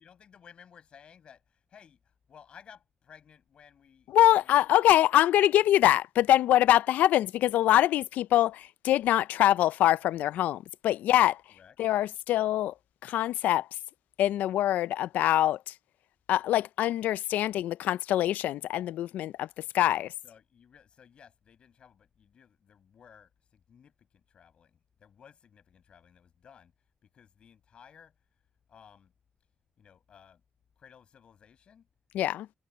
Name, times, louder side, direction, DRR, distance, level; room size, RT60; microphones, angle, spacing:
voice 1, 0.0-2.0 2.3-5.0 11.5-11.8 19.7-26.7 27.0-28.1 28.7-29.1 29.8-30.4 30.8-31.9, left 7 dB, 40° left, 7.7 m, -57 dB
voice 2, 4.1-11.4 11.8-12.7 13.0-13.7 14.2-15.6 16.3-19.5 19.7-20.1 32.1-32.5, left 13 dB, 80° left, 0.4 m, -24 dB
cardioid pair, 180°, 3 cm